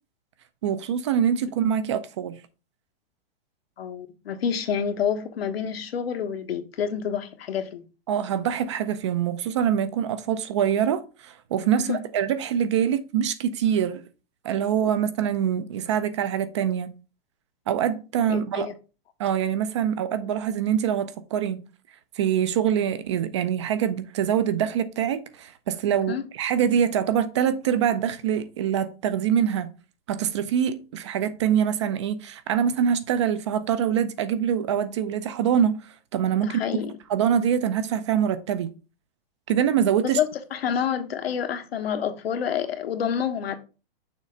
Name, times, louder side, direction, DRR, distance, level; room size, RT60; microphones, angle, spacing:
voice 1, 0.6-2.4 8.1-14.0 14.4-16.9 17.7-18.7 19.2-21.7 22.2-29.7 30.1-35.8 36.1-36.6 37.1-38.7 39.5-40.2, right 9 dB, 30° right, 0.4 m, -24 dB
voice 2, 3.8-7.8 11.8-12.0 18.3-18.7 26.1-26.3 36.4-36.9 40.0-43.6, left 8 dB, 85° left, 1.2 m, -28 dB
6.5 x 3.2 x 5.0 m
hypercardioid pair, 160°, 29 cm